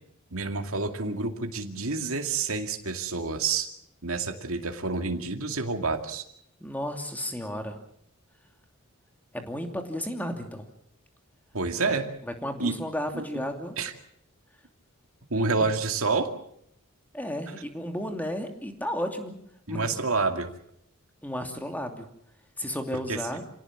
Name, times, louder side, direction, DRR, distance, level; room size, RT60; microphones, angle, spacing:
voice 1, 0.3-3.7 4.0-6.2 11.5-12.1 12.6-12.7 13.1-13.2 13.8-13.9 15.3-16.3 19.7-20.5 23.1-23.2, right 4 dB, 70° right, 5 dB, 2.4 m, -28 dB
voice 2, 6.6-7.8 9.3-10.7 11.8-11.9 12.3-13.8 15.6-15.7 17.1-19.4 19.7-20.1 21.2-22.1 22.6-23.4, equal, 10° left, 5 dB, 2.8 m, -33 dB
27.5 x 17.5 x 7.3 m, 0.72 s
head